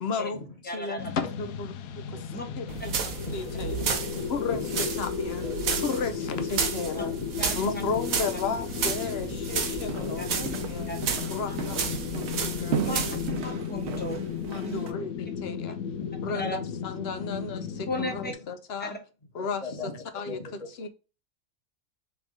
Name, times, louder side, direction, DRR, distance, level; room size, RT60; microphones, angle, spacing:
voice 1, 0.0-2.0 2.6-2.7 3.3-3.8 4.3-4.6 5.0-5.4 5.8-7.1 7.5-10.9 11.3-12.0 12.4-12.8 14.5-15.8 16.2-19.0 19.3-19.6 20.1-20.4 20.8-20.9, left 5 dB, 60° left, 0.7 m, -33 dB
voice 2, 0.6-1.1 2.3-2.5 7.4-7.5 10.2-10.3 10.9-11.0 11.5-11.6 12.8-13.0 13.4-14.2 14.6-14.8 16.3-16.6 17.9-18.3 18.8-19.0, left 1 dB, 10° left, 0.8 m, -34 dB
sound 1, 1.0-18.3, left 7 dB, 90° left, 1.1 m, -34 dB
voice 3, 2.1-2.9 3.2-4.8 5.4-5.8 6.1-6.5 7.0-7.3 7.9-8.1 10.0-10.4 11.0-11.1 11.6-12.3 14.8-15.1 16.0-16.1 16.5-16.6 19.4-20.7, left 2 dB, 30° left, 1.2 m, -41 dB
sound 2, 2.7-13.3, right 6 dB, 75° right, 1.3 m, -33 dB
sound 3, 9.7-14.9, right 7 dB, 60° right, 0.8 m, -36 dB
3.6 x 3.5 x 3.7 m
omnidirectional pair, 1.5 m